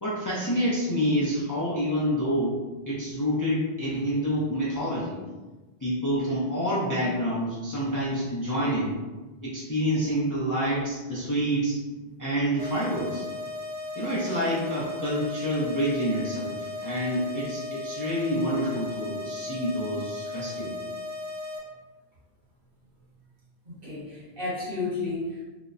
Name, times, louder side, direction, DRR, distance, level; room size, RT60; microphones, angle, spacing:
voice 1, 0.0-2.6 2.9-5.2 5.8-8.9 9.4-11.8 12.2-13.2 14.0-20.7, equal, 30° left, -8 dB, 0.3 m, -27 dB
sound 1, 12.6-21.6, left 2 dB, 80° right, 0.9 m, -36 dB
voice 2, 23.6-25.4, left 3 dB, 60° right, -8 dB, 1.2 m, -32 dB
2.7 x 2.0 x 2.4 m, 1.2 s
omnidirectional pair, 1.1 m